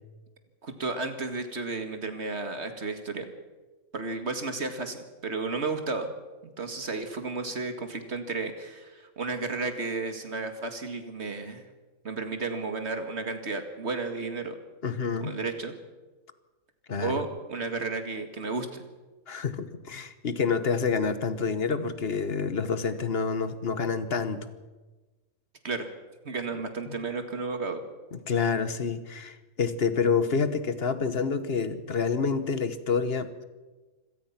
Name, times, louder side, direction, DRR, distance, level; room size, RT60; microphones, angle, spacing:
voice 1, 0.6-3.3 3.9-6.1 6.6-11.6 12.0-14.6 15.2-15.7 17.0-18.8 25.6-25.9 26.2-27.8, right 3 dB, 50° right, 7 dB, 2.3 m, -33 dB
voice 2, 14.8-15.3 16.9-17.2 19.3-24.5 26.9-27.0 28.1-33.4, left 5 dB, 45° left, 12 dB, 1.4 m, -28 dB
25.5 x 17.5 x 5.9 m, 1.2 s
omnidirectional pair, 1.4 m